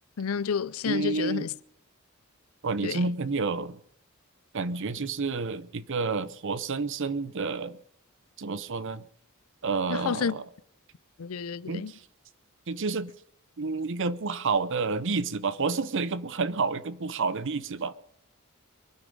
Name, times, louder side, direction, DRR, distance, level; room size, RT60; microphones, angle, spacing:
voice 1, 0.2-1.5 2.8-3.0 9.9-10.4 11.2-11.9, left 6 dB, 80° left, 0.5 m, -30 dB
voice 2, 0.8-1.5 2.6-3.8 4.5-7.8 8.4-9.1 9.6-10.4 11.7-12.0 12.7-13.1 13.6-17.9, right 4 dB, 60° right, 0.7 m, -29 dB
23.5 x 9.5 x 5.4 m
head